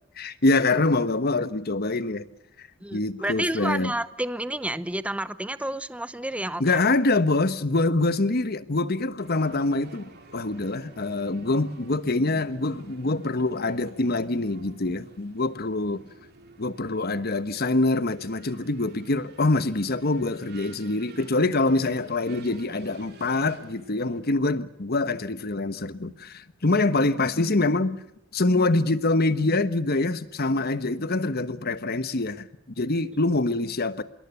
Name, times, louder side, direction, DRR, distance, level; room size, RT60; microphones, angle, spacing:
voice 1, 0.2-2.3 2.6-3.9 6.6-16.0 16.6-28.0 28.3-32.5 32.8-34.0, left 2 dB, 50° left, 1.2 m, -25 dB
voice 2, 2.8-6.8, right 1 dB, 5° right, 0.8 m, -30 dB
sound 1, 9.2-24.2, right 2 dB, 55° right, 3.6 m, -51 dB
26.0 x 22.0 x 6.9 m
head